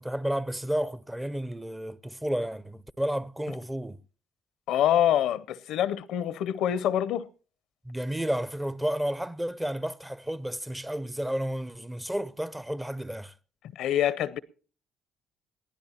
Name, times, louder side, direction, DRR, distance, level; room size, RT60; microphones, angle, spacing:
voice 1, 0.0-4.0 7.9-13.3, equal, 10° right, 0.6 m, -31 dB
voice 2, 4.7-7.3 13.7-14.4, left 11 dB, 75° left, 0.6 m, -25 dB
21.5 x 15.5 x 2.9 m
supercardioid pair, 65°, 0 cm